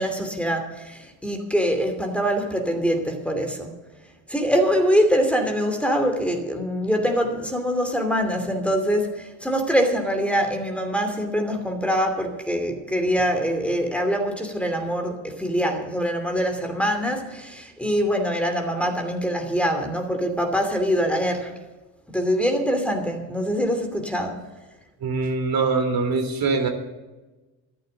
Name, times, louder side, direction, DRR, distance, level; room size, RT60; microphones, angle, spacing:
voice 1, 0.0-3.7 4.3-21.5 22.1-24.4, equal, 5° left, 2.7 m, -24 dB
voice 2, 25.0-26.7, right 4 dB, 55° right, 3.5 m, -23 dB
14.0 x 11.5 x 6.8 m
cardioid pair, 90°, 42 cm